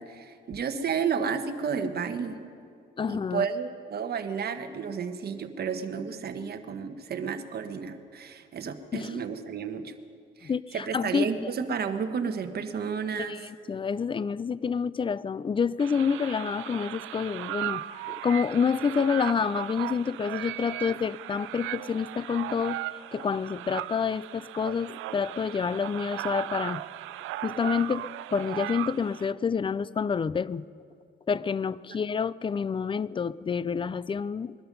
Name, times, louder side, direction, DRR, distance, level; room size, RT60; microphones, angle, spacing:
voice 1, 0.0-2.4 3.1-9.9 10.4-13.4, right 6 dB, 55° right, 7 dB, 1.2 m, -32 dB
voice 2, 3.0-3.5 8.9-9.2 10.4-11.5 13.2-22.8 23.1-26.8 27.4-30.6 31.3-34.6, left 6 dB, 25° left, 20 dB, 0.4 m, -28 dB
sound 1, 15.8-29.3, right 15 dB, 90° right, 0.4 m, -37 dB
21.0 x 12.5 x 5.4 m, 2.3 s
cardioid pair, 90°, 20 cm